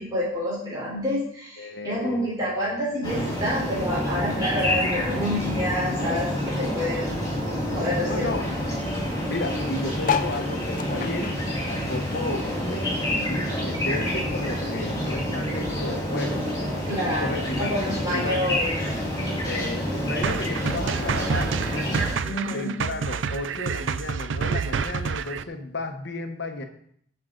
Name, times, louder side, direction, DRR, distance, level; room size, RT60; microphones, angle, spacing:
voice 1, 0.0-8.3 16.8-18.7 22.2-22.7, equal, 20° right, -7 dB, 3.8 m, -28 dB
voice 2, 1.6-2.5 8.0-8.5 9.3-11.4 11.6-17.7 18.1-18.4 19.4-21.6 22.5-26.6, left 2 dB, 60° left, 6 dB, 1.1 m, -33 dB
sound 1, 3.0-22.1, equal, 20° left, 4.5 m, -28 dB
sound 2, 10.0-12.8 13.1-14.6 15.1-15.2 15.4-15.5 15.7-16.1 16.9-17.0, left 7 dB, 45° left, 0.5 m, -31 dB
sound 3, 20.2-25.4, right 6 dB, 70° right, 0.4 m, -28 dB
14.0 x 5.7 x 3.9 m, 0.66 s
head